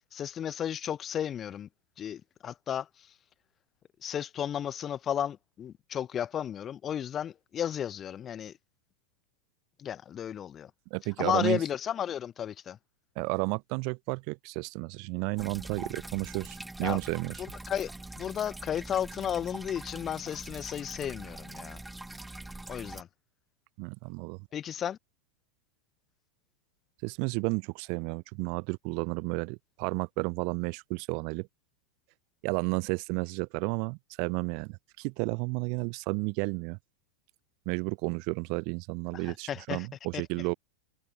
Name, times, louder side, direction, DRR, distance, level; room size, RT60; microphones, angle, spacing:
voice 1, 0.1-1.7 2.0-2.9 4.0-8.5 9.8-10.7 11.2-12.8 16.8-17.0 17.4-17.9 18.2-21.8 22.7-23.1 24.5-25.0 39.3-39.9 40.1-40.2, left 9 dB, 25° left, 0.6 m, -33 dB
voice 2, 10.9-11.6 13.2-17.3 23.8-24.4 27.0-31.5 32.4-36.8 37.7-40.5, right 37 dB, 45° right, 0.6 m, -32 dB
sound 1, 15.4-23.0, right 2 dB, 5° right, 1.5 m, -43 dB
figure-of-eight pair, 90°, 0 cm